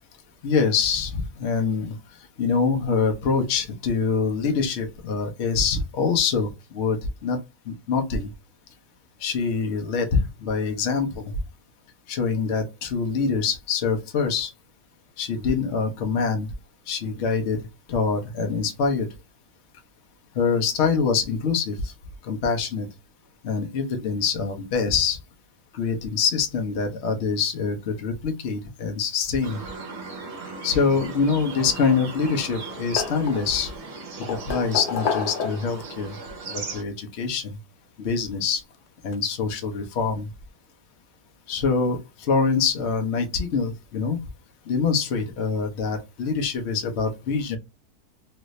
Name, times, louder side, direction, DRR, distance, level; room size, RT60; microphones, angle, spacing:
voice 1, 0.4-2.0 2.4-7.0 7.2-7.4 7.7-8.3 9.2-11.3 12.1-14.5 15.2-16.5 16.9-19.1 20.3-21.9 22.2-22.9 23.4-25.2 25.7-29.6 30.6-33.7 34.3-36.2 36.5-37.6 38.0-38.6 39.0-40.3 41.5-44.2 44.7-47.6, left 5 dB, 55° left, 0.9 m, -25 dB
sound 1, 29.4-36.8, right 3 dB, 50° right, 1.2 m, -37 dB
sound 2, 31.6-32.3 32.6-33.7 34.2-35.9 37.1-37.2 38.7-38.8 39.1-39.2, left 6 dB, 85° left, 1.2 m, -30 dB
3.2 x 2.5 x 3.0 m
omnidirectional pair, 1.6 m